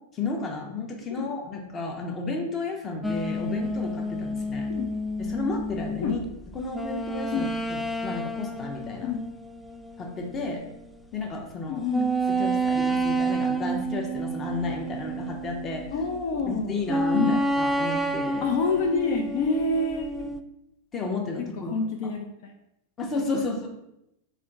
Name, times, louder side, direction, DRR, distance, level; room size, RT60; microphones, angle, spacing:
voice 1, 0.1-4.7 5.2-6.2 6.5-9.1 10.0-10.6 11.1-11.8 12.3-15.9 16.4-18.5 20.9-21.7 23.0-23.7, left 3 dB, 25° left, 2 dB, 0.9 m, -32 dB
sound 1, 3.0-10.8 11.2-11.3 11.9-16.3 16.9-20.4, right 2 dB, 5° left, 0.3 m, -29 dB
voice 2, 11.7-12.1 15.9-16.7 17.1-17.4 18.4-20.3 21.5-22.5, left 4 dB, 60° left, 2 dB, 0.5 m, -27 dB
3.5 x 2.6 x 4.6 m, 0.83 s
hypercardioid pair, 120°, 0 cm